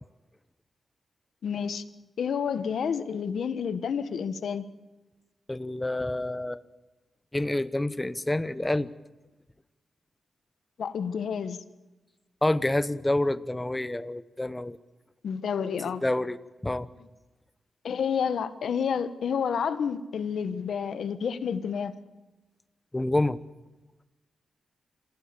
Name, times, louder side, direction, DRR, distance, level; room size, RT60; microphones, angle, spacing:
voice 1, 1.4-1.8 2.2-4.6 10.8-11.6 15.2-16.0 17.8-21.9, left 7 dB, 75° left, 1.3 m, -29 dB
voice 2, 5.5-6.6 7.3-8.9 12.4-14.8 16.0-16.4 16.6-16.9 22.9-23.4, left 1 dB, 15° left, 1.0 m, -27 dB
26.5 x 16.5 x 7.0 m
cardioid pair, 90°, 0 cm